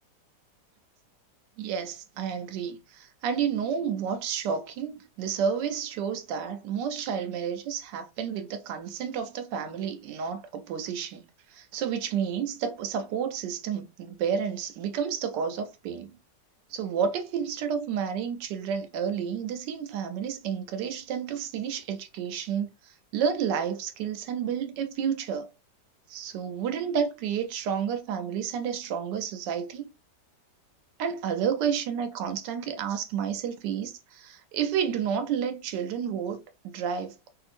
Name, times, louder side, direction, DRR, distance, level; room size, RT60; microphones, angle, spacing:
voice 1, 1.6-11.2 11.5-16.2 16.7-25.5 26.1-29.8 31.0-37.3, right 7 dB, 80° right, 1.2 m, -30 dB
3.0 x 2.7 x 2.5 m
omnidirectional pair, 1.9 m